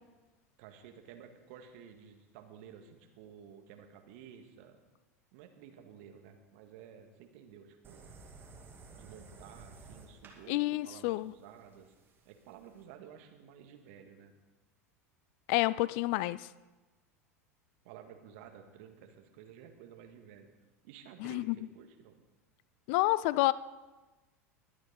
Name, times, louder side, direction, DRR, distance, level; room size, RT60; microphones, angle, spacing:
voice 1, 0.6-4.8 5.3-8.1 8.9-11.9 12.3-14.3 17.8-20.5 20.8-22.2, right 8 dB, 55° right, 5 dB, 1.7 m, -53 dB
sound 1, 7.8-12.8, right 3 dB, 25° right, 2.5 m, -54 dB
voice 2, 10.5-11.3 15.5-16.5 21.2-21.5 22.9-23.5, left 19 dB, 50° left, 19 dB, 0.4 m, -29 dB
21.0 x 8.8 x 4.1 m, 1.1 s
figure-of-eight pair, 85°, 8 cm